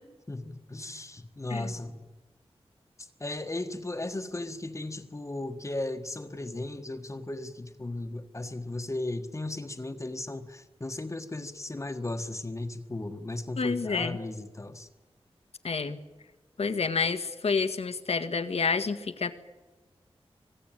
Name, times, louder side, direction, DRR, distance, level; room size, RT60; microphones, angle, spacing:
voice 1, 0.3-2.0 3.0-14.9, left 2 dB, 30° left, 5 dB, 1.5 m, -36 dB
voice 2, 13.6-14.2 15.6-16.0 16.6-19.4, left 4 dB, 80° left, 9 dB, 1.8 m, -29 dB
26.0 x 19.0 x 9.1 m, 1.2 s
wide cardioid pair, 105°, 10 cm